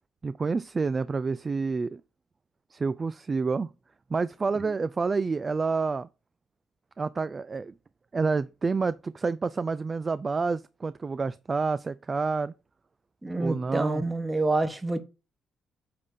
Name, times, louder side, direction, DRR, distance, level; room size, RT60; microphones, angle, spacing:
voice 1, 0.2-2.0 2.7-3.7 4.1-6.1 7.0-7.7 8.1-12.5 13.3-14.0, right 4 dB, 30° right, 0.3 m, -28 dB
voice 2, 13.2-15.0, right 2 dB, 15° right, 1.2 m, -27 dB
8.5 x 3.6 x 4.2 m
cardioid pair, 90°, 0 cm